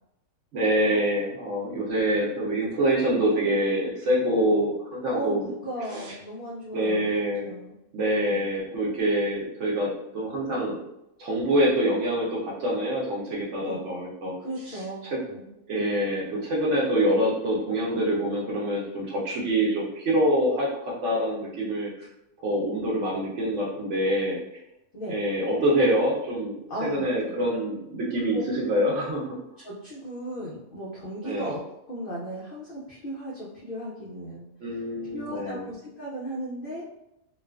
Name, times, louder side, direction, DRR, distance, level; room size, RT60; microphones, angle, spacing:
voice 1, 0.5-5.5 5.9-6.0 6.7-7.5 7.9-10.8 11.2-14.4 14.7-15.2 15.7-21.9 22.4-24.4 25.1-29.4 31.2-31.5 34.6-35.6, right 1 dB, 65° right, -4 dB, 0.8 m, -25 dB
voice 2, 5.1-7.1 7.4-7.7 8.1-8.5 13.6-13.8 14.4-15.5 24.9-25.1 26.7-27.1 28.3-28.4 29.6-31.6 31.9-34.5 35.1-36.8, right 1 dB, 80° left, -6 dB, 0.4 m, -36 dB
2.4 x 2.3 x 2.3 m, 0.85 s
omnidirectional pair, 1.6 m